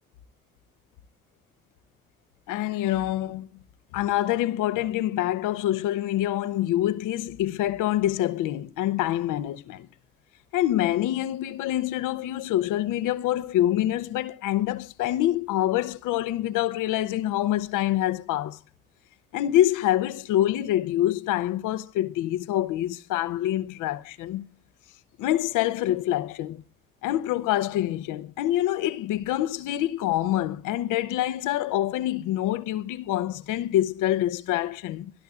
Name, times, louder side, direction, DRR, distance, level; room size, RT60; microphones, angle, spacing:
voice 1, 2.5-3.5 3.9-9.9 10.5-18.6 19.3-24.5 25.2-26.6 27.0-35.1, left 13 dB, 75° left, 0.7 m, -26 dB
25.5 x 11.5 x 2.4 m
hypercardioid pair, 45°, 32 cm